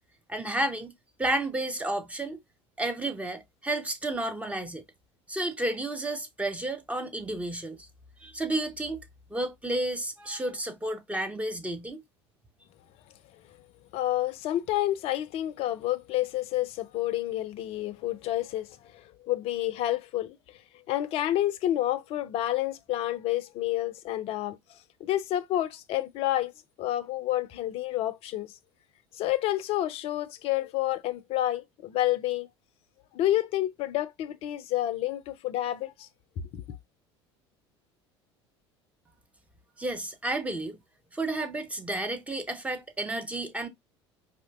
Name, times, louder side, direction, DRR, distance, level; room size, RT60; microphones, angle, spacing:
voice 1, 0.3-0.9 1.2-2.4 2.8-4.8 5.3-7.8 8.2-9.0 9.3-12.0 39.8-40.8 41.1-43.7, right 1 dB, 10° right, 0.6 m, -31 dB
voice 2, 13.9-20.6 20.9-24.6 25.0-26.5 26.8-28.5 29.1-32.5 33.1-36.1 36.5-36.6, left 14 dB, 45° left, 0.5 m, -29 dB
4.3 x 2.5 x 2.3 m
figure-of-eight pair, 70°, 14 cm